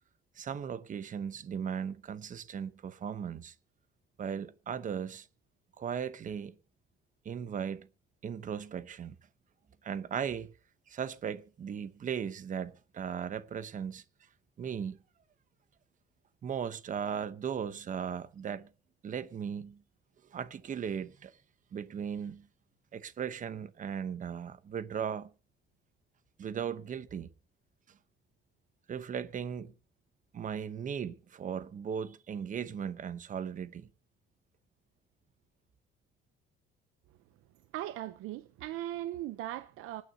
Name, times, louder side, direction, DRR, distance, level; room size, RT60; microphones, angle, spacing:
voice 1, 0.4-3.5 4.2-5.3 5.8-6.5 7.2-7.9 8.2-9.1 9.8-10.5 10.9-14.0 14.6-15.0 16.4-18.7 19.0-19.8 20.3-21.3 21.7-22.5 22.9-25.3 26.4-27.3 28.9-29.7 30.3-33.9, right 7 dB, 40° right, 0.9 m, -37 dB
voice 2, 37.7-40.0, right 14 dB, 85° right, 0.7 m, -38 dB
25.5 x 9.5 x 2.8 m
cardioid pair, 135°, 21 cm